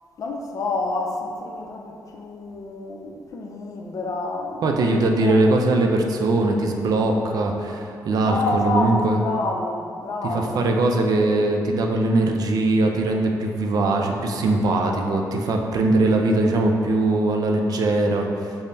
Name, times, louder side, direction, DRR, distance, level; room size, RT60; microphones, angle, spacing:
voice 1, 0.2-4.8 5.2-5.4 8.2-11.0, left 2 dB, 50° left, 1 dB, 0.4 m, -28 dB
voice 2, 4.6-9.2 10.3-18.5, right 2 dB, 60° right, 2 dB, 0.4 m, -21 dB
5.2 x 2.0 x 2.7 m, 2.5 s
cardioid pair, 90°, 7 cm